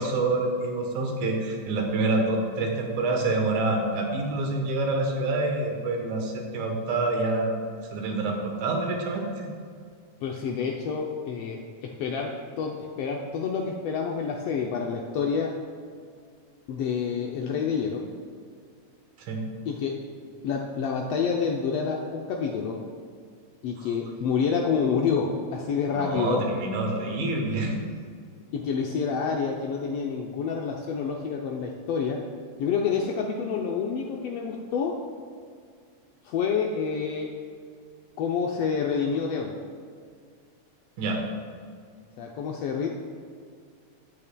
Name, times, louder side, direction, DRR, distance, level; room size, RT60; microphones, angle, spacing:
voice 1, 0.0-7.6 7.9-9.5 19.2-19.4 23.8-23.9 25.9-27.7 41.0-41.2, right 2 dB, 75° right, 2 dB, 2.5 m, -27 dB
voice 2, 10.2-15.5 16.7-18.1 19.7-20.0 20.4-22.8 23.6-26.4 28.5-32.2 32.6-35.0 36.2-37.3 38.2-39.5 42.2-42.9, left 6 dB, 85° left, 0 dB, 1.3 m, -28 dB
14.0 x 8.4 x 2.2 m, 2.1 s
omnidirectional pair, 3.5 m